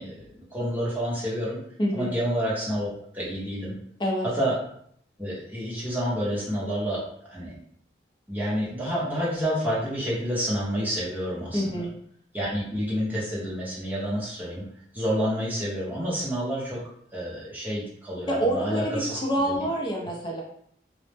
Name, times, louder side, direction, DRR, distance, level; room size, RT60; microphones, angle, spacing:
voice 1, 0.0-1.6 1.9-2.9 3.1-3.7 4.3-4.5 5.2-7.0 7.3-7.5 8.3-11.9 12.3-14.6 14.9-16.8 17.1-19.2 19.5-19.6, equal, 10° right, -6 dB, 0.7 m, -29 dB
voice 2, 11.5-11.9 18.3-20.4, equal, 25° left, -2 dB, 0.5 m, -27 dB
2.0 x 2.0 x 3.2 m, 0.66 s
head